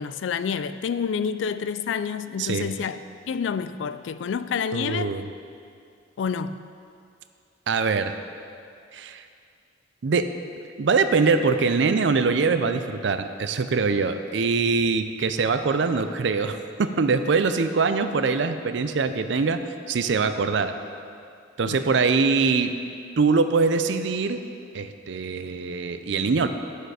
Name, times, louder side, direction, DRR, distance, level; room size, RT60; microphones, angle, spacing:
voice 1, 0.0-3.0 3.3-5.1 6.2-6.6 21.7-21.8, left 6 dB, 75° left, 12 dB, 0.3 m, -28 dB
voice 2, 2.4-2.7 4.7-5.3 7.7-8.1 8.9-9.2 10.0-10.3 10.8-19.6 19.9-20.7 21.6-22.7 23.2-24.4 24.7-26.5, right 4 dB, 70° right, 9 dB, 0.5 m, -23 dB
9.0 x 6.7 x 4.8 m, 2.4 s
head